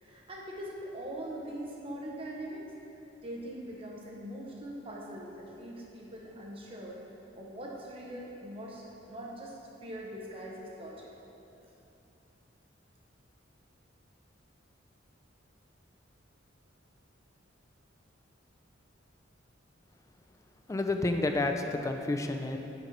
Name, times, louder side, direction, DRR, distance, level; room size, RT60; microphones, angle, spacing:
voice 1, 0.0-2.7 3.2-7.0 7.4-11.1, right 1 dB, 30° right, -2 dB, 0.9 m, -42 dB
voice 2, 20.7-22.6, left 2 dB, 15° left, 5 dB, 0.3 m, -30 dB
5.9 x 4.3 x 5.2 m, 2.9 s
head